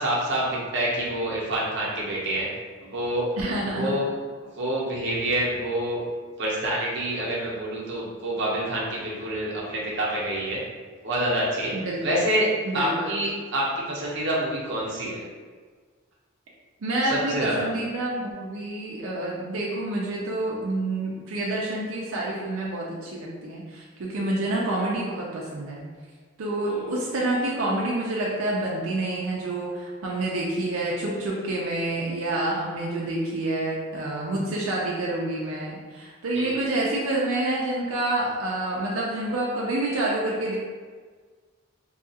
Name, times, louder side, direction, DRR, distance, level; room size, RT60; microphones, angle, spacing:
voice 1, 0.0-2.5 2.8-3.3 3.6-4.1 4.4-6.0 6.4-10.6 11.0-11.7 12.0-12.5 12.7-15.2 17.0-17.7 26.6-27.0 36.3-36.5, right 1 dB, 55° right, -5 dB, 0.7 m, -27 dB
voice 2, 3.4-4.0 11.7-12.2 12.6-13.1 16.8-25.8 26.4-40.6, right 2 dB, 85° right, -4 dB, 0.5 m, -28 dB
2.7 x 2.3 x 2.8 m, 1.5 s
head